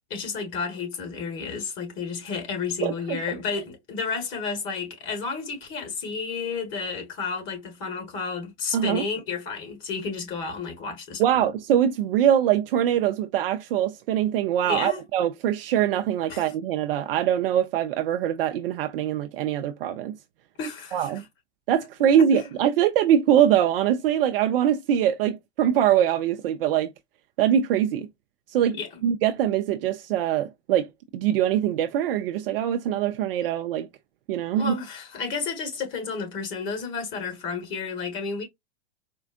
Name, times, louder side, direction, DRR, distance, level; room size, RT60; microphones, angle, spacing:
voice 1, 0.1-11.2 14.6-15.0 16.3-16.5 20.6-21.2 22.0-22.2 28.7-28.9 34.5-38.4, left 5 dB, 35° left, 1.6 m, -31 dB
voice 2, 2.8-3.2 8.7-9.0 11.2-20.2 20.9-21.2 21.7-26.9 27.4-28.1 28.5-28.8 29.0-30.9 31.1-33.9 34.3-34.7, right 10 dB, 55° right, 0.5 m, -23 dB
4.4 x 2.4 x 2.4 m
hypercardioid pair, 110°, 36 cm